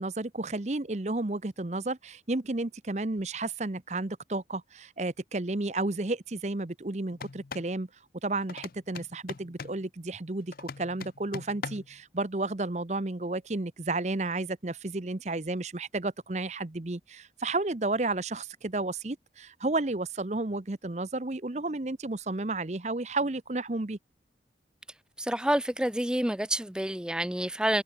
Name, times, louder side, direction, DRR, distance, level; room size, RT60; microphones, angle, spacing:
voice 1, 0.0-7.9 8.2-24.0, right 2 dB, 40° right, 0.9 m, -32 dB
sound 1, 7.1-7.7 8.5-9.8 10.5-12.0, left 5 dB, 55° left, 0.5 m, -41 dB
voice 2, 25.2-27.8, right 1 dB, 5° right, 0.5 m, -28 dB
head